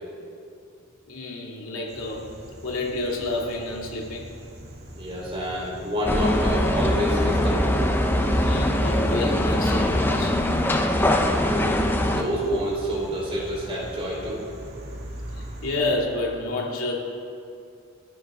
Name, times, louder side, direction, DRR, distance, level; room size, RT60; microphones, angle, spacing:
voice 1, 1.1-2.3 2.6-4.3 8.4-10.4 15.3-16.9, left 2 dB, 75° left, -1 dB, 2.6 m, -29 dB
sound 1, 1.9-16.0, right 1 dB, 50° right, 2.7 m, -41 dB
voice 2, 5.0-7.8 11.2-14.4, equal, 25° right, -4 dB, 4.3 m, -28 dB
sound 2, 6.1-12.2, left 1 dB, 10° left, 0.8 m, -22 dB
29.5 x 10.5 x 3.8 m, 2.5 s
head